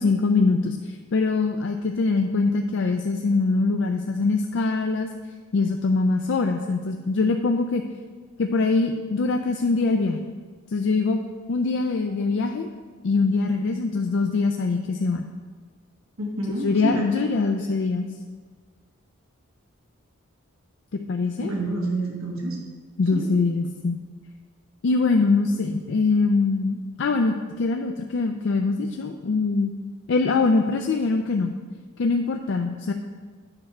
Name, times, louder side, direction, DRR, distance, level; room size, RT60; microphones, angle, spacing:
voice 1, 0.0-5.1 5.5-7.8 8.4-10.2 10.7-11.2 11.5-12.7 13.0-15.3 16.6-18.1 20.9-21.5 23.0-24.0 24.8-29.7 30.1-31.5 32.0-32.9, left 3 dB, 55° left, 4 dB, 0.4 m, -23 dB
voice 2, 16.2-17.1 17.6-17.7 21.4-22.6 23.1-23.3, right 2 dB, 70° right, -1 dB, 1.4 m, -28 dB
8.7 x 4.4 x 6.0 m, 1.5 s
head